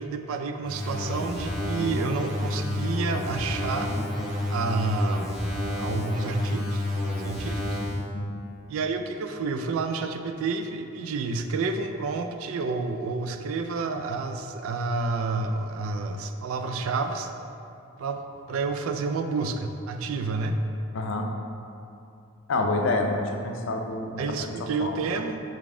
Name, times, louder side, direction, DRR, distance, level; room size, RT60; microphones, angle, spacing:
voice 1, 0.0-3.9 4.5-5.3 5.8-6.8 7.2-7.8 8.7-17.3 18.0-18.2 18.5-20.6 24.2-25.4, right 4 dB, 75° right, 7 dB, 0.3 m, -29 dB
sound 1, 0.6-8.0, left 1 dB, ahead, 0.8 m, -30 dB
voice 2, 20.9-21.3 22.5-24.2 24.8-24.9, left 2 dB, 65° left, 3 dB, 0.4 m, -27 dB
4.0 x 3.5 x 3.6 m, 2.6 s
head